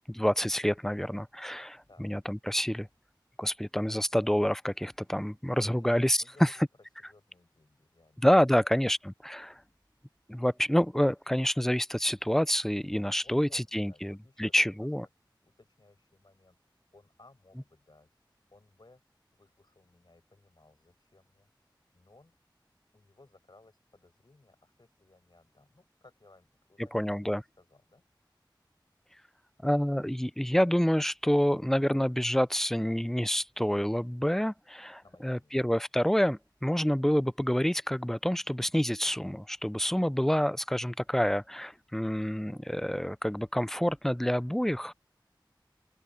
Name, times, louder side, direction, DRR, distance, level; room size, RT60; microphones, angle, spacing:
voice 1, 0.1-2.9 3.4-6.5 8.2-9.0 9.2-9.6 10.3-14.1 14.4-15.1 26.9-27.4 29.6-44.9, equal, 5° left, 0.4 m, -28 dB
voice 2, 6.2-6.7 7.0-8.3 13.2-14.9 15.4-19.0 19.3-22.3 22.9-26.9 27.2-28.0 35.0-35.6, left 2 dB, 65° left, 5.9 m, -61 dB
open air
wide cardioid pair, 40°, 8 cm